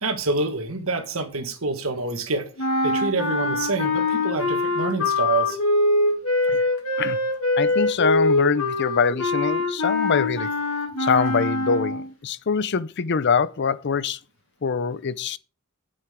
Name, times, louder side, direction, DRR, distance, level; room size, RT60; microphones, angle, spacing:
voice 1, 0.0-2.4 2.8-5.6, right 3 dB, 75° right, 1.7 m, -27 dB
sound 1, 2.6-12.1, left 2 dB, 85° left, 2.1 m, -23 dB
voice 2, 7.6-10.5 11.0-14.2 14.6-15.4, left 5 dB, 55° left, 0.5 m, -24 dB
9.4 x 8.8 x 3.7 m
head